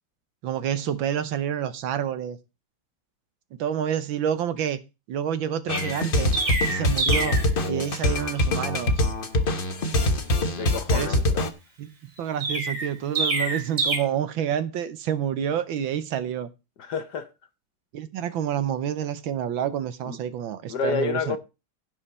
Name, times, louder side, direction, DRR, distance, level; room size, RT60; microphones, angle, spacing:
voice 1, 0.4-2.4 3.6-4.8 5.1-6.3 6.7-9.0 10.9-11.2 11.8-11.9 12.2-16.5 17.9-21.4, right 9 dB, 70° right, 1.5 m, -28 dB
sound 1, 5.7-11.5, left 1 dB, 35° left, 0.9 m, -24 dB
Chirp tweet, 5.7-7.5 12.4-14.0, right 3 dB, 35° right, 2.7 m, -26 dB
voice 2, 10.6-11.5 16.8-17.3 20.1-20.2 20.7-21.4, left 6 dB, 60° left, 1.3 m, -29 dB
16.0 x 5.6 x 4.2 m
omnidirectional pair, 2.4 m